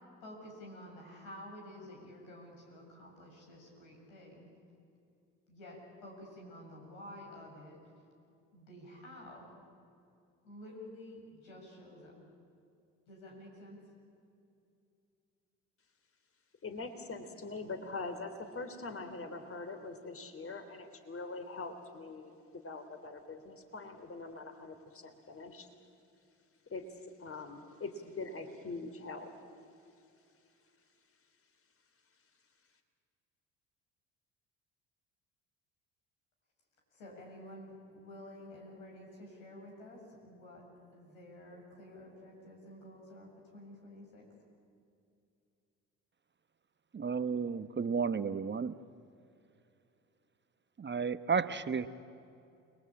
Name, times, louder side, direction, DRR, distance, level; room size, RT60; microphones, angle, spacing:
voice 1, 0.2-4.5 5.5-7.8 8.5-9.5 10.4-12.2 13.1-13.8 36.9-40.6 40.9-44.3, left 1 dB, 85° left, 0 dB, 7.4 m, -50 dB
voice 2, 16.6-22.3 22.6-25.7 26.7-29.3, left 3 dB, 35° left, 8 dB, 3.5 m, -43 dB
voice 3, 46.9-48.7 50.8-51.9, right 5 dB, 30° right, 12 dB, 1.0 m, -32 dB
29.5 x 21.0 x 8.8 m, 2.6 s
hypercardioid pair, 60°, 39 cm